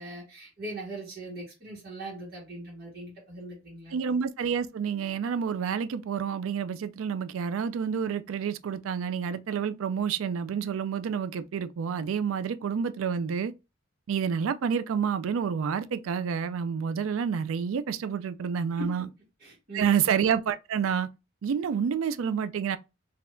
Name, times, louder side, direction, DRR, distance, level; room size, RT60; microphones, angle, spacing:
voice 1, 0.0-4.0 18.8-18.9 19.4-19.9, right 1 dB, 50° right, 1.5 m, -40 dB
voice 2, 3.9-13.5 14.1-19.0 19.7-21.1 21.4-22.8, right 7 dB, 80° right, 0.4 m, -29 dB
3.9 x 2.8 x 2.5 m
head